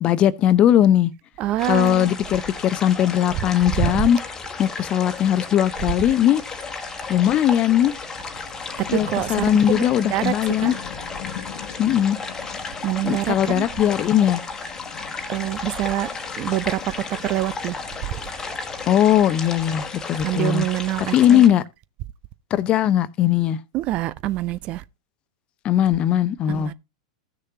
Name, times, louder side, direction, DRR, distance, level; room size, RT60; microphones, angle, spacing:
voice 1, 0.0-1.1 1.6-4.2 4.6-6.4 7.1-7.9 8.9-10.7 11.8-12.2 13.0-14.4 18.9-20.6 21.1-21.6 22.5-23.6 25.6-26.7, left 11 dB, 35° left, 0.7 m, -19 dB
voice 2, 1.4-2.1 3.8-3.9 8.8-10.3 10.6-10.7 12.8-13.7 15.3-16.1 16.4-16.8 17.2-17.8 20.2-21.4 23.7-24.8 26.5-26.7, right 15 dB, 40° right, 0.5 m, -25 dB
sound 1, 1.6-21.5, left 4 dB, 15° left, 1.4 m, -34 dB
sound 2, 2.4-20.0, left 8 dB, 55° left, 1.2 m, -43 dB
16.0 x 6.6 x 2.8 m
figure-of-eight pair, 95°, 3 cm